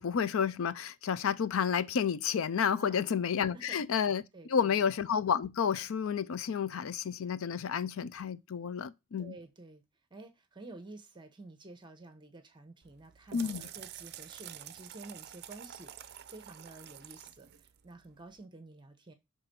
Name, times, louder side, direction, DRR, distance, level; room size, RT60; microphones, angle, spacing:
voice 1, 0.0-4.2 4.5-9.3 13.3-13.7, left 7 dB, 65° left, 0.4 m, -31 dB
voice 2, 4.3-4.8 9.2-9.8 10.1-19.1, right 2 dB, 20° right, 0.8 m, -51 dB
sound 1, 12.8-18.4, right 11 dB, 50° right, 0.5 m, -49 dB
5.8 x 3.5 x 5.2 m
head